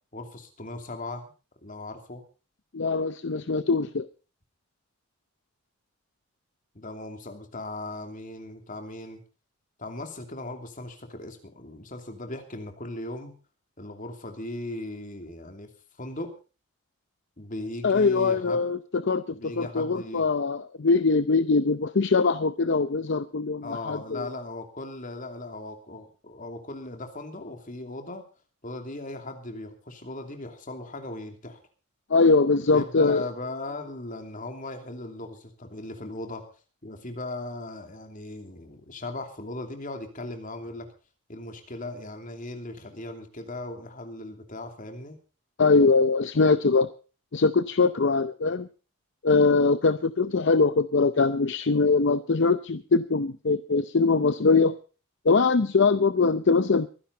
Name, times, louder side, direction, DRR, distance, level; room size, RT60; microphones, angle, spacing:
voice 1, 0.1-1.3 1.6-2.2 6.7-9.2 9.8-13.3 13.8-15.7 16.0-16.3 17.4-18.6 19.3-20.3 23.6-28.2 28.6-31.6 32.7-36.4 36.8-40.9 41.3-45.1, left 2 dB, 40° left, 5 dB, 2.8 m, -38 dB
voice 2, 2.7-4.1 17.8-24.3 32.1-33.3 45.6-46.9 47.3-48.7 49.2-54.7 55.2-56.9, left 4 dB, 55° left, 14 dB, 0.6 m, -22 dB
23.5 x 10.5 x 4.0 m, 0.35 s
head